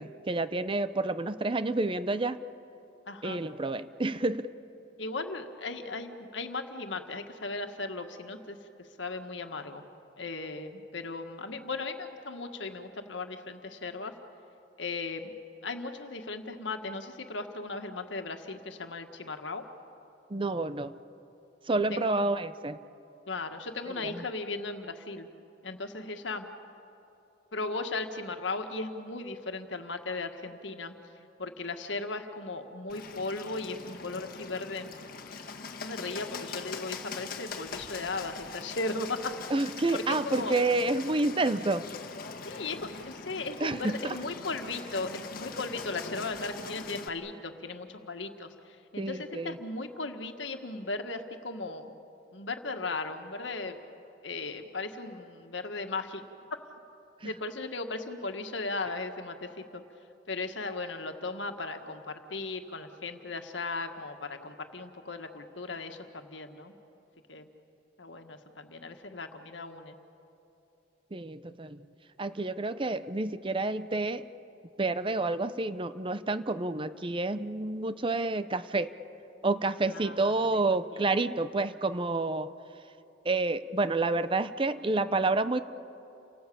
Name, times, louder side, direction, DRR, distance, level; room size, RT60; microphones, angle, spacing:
voice 1, 0.0-2.4 3.2-4.5 20.3-20.9 21.7-22.8 39.5-41.9 43.6-44.1 49.0-49.5 57.2-57.3 71.1-71.8 72.2-74.2 74.8-78.9 79.4-82.5 83.2-85.6, right 2 dB, 30° right, 13 dB, 0.7 m, -29 dB
voice 2, 3.1-3.4 5.0-9.8 10.2-14.1 14.8-15.3 15.6-19.6 21.9-22.2 23.3-25.3 25.6-26.5 27.5-30.9 31.4-34.9 35.8-39.3 39.9-40.6 42.4-51.9 52.3-53.8 54.2-56.2 56.5-56.6 57.2-59.8 60.3-66.7 67.3-67.5 68.0-69.9 79.9-80.6 80.9-81.0, left 3 dB, 80° left, 6 dB, 1.7 m, -37 dB
Bird, 32.9-47.1, left 4 dB, 50° left, 1.6 m, -42 dB
29.5 x 18.5 x 8.6 m, 2.8 s
head